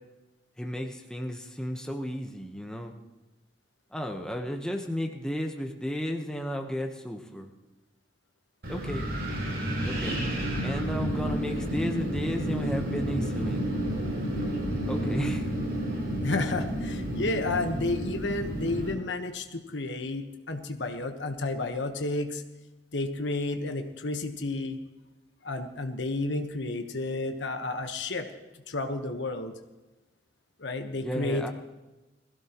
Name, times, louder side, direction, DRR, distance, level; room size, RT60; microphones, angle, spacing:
voice 1, 0.6-2.9 3.9-7.5 8.7-9.1 9.8-10.2 10.6-13.7 14.9-15.4 31.0-31.5, equal, 5° left, 2 dB, 1.1 m, -33 dB
Wind, 8.6-18.9, right 1 dB, 60° right, 5.5 m, -30 dB
voice 2, 16.2-22.4 22.9-24.8 25.4-28.3 28.7-29.5 30.6-31.5, left 2 dB, 80° left, 6 dB, 1.2 m, -31 dB
21.5 x 16.0 x 3.0 m, 1.1 s
head